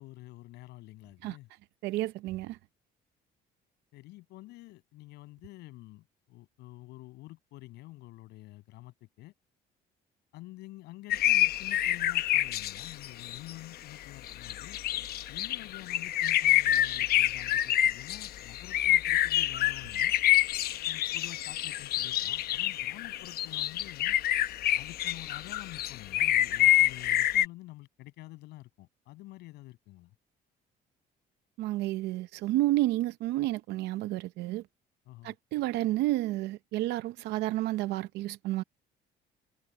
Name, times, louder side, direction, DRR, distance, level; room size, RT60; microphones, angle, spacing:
voice 1, 0.0-1.5 3.9-9.3 10.3-14.8 15.3-20.1 20.9-24.2 24.8-30.2 35.1-35.3, left 18 dB, 90° left, 7.1 m, -48 dB
voice 2, 1.8-2.6 31.6-34.6 35.2-38.6, right 16 dB, 85° right, 0.7 m, -30 dB
sound 1, 11.1-13.5 14.2-27.4, left 13 dB, 65° left, 0.8 m, -27 dB
cardioid pair, 110°, 17 cm